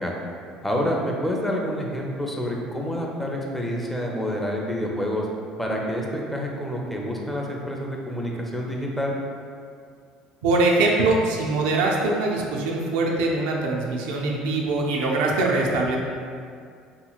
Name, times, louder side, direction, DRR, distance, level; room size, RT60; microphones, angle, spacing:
voice 1, 0.6-5.3 5.6-9.1, equal, 5° left, -1 dB, 0.5 m, -28 dB
voice 2, 10.4-16.0, right 2 dB, 75° right, -1 dB, 0.4 m, -22 dB
2.9 x 2.7 x 2.4 m, 2.2 s
hypercardioid pair, 65°, 3 cm